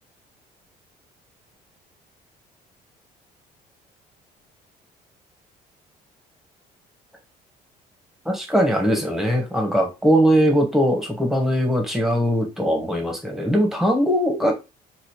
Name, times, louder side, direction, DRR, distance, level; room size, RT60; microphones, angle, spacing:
voice 1, 8.2-14.5, equal, ahead, 2 dB, 1.2 m, -20 dB
4.0 x 2.5 x 3.0 m, 0.26 s
cardioid pair, 110°, 17 cm